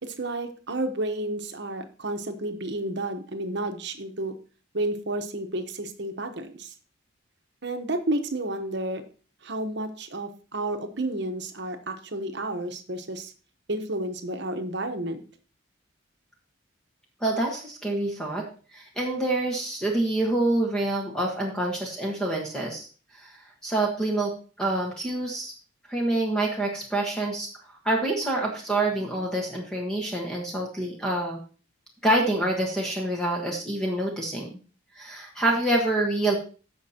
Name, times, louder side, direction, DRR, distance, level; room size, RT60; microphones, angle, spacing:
voice 1, 0.0-4.3 4.7-6.7 7.6-9.0 9.4-13.3 13.7-15.2, right 1 dB, 55° right, 7 dB, 1.1 m, -31 dB
voice 2, 17.2-18.4 18.7-22.9 23.1-23.3 23.6-24.3 24.6-25.5 25.9-27.5 27.8-31.4 32.0-34.5 34.9-36.4, right 1 dB, 5° left, -2 dB, 1.3 m, -26 dB
15.0 x 5.6 x 2.9 m, 0.37 s
head